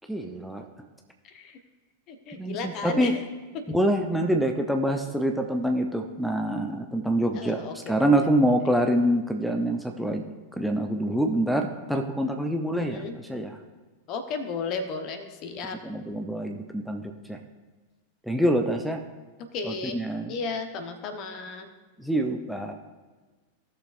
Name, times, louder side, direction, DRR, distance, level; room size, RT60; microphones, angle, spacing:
voice 1, 0.1-0.7 2.4-3.1 3.7-7.6 7.9-10.2 10.6-13.6 15.8-17.0 17.3-17.4 18.3-19.0 19.6-20.3 22.0-22.7, right 1 dB, ahead, 2 dB, 0.7 m, -26 dB
voice 2, 1.2-1.6 2.1-3.2 3.5-3.7 7.3-8.3 12.8-13.2 14.1-15.8 19.5-20.0 20.3-21.7, left 4 dB, 40° left, 7 dB, 1.0 m, -34 dB
17.5 x 6.6 x 2.6 m, 1.3 s
figure-of-eight pair, 90°, 0 cm